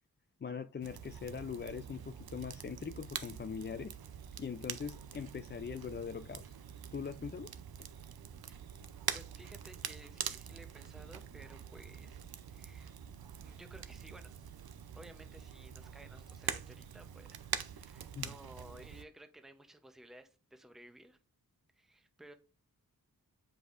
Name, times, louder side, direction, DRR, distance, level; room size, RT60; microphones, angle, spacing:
voice 1, 0.4-4.0 4.4-6.6 6.9-7.5 18.1-18.3, left 6 dB, 30° left, 0.4 m, -41 dB
Crackle, 0.8-19.0, right 8 dB, 75° right, 0.6 m, -45 dB
voice 2, 9.1-12.9 13.4-14.3 14.9-21.2 21.8-22.3, right 1 dB, ahead, 0.7 m, -56 dB
7.9 x 5.1 x 2.5 m
wide cardioid pair, 70°, 37 cm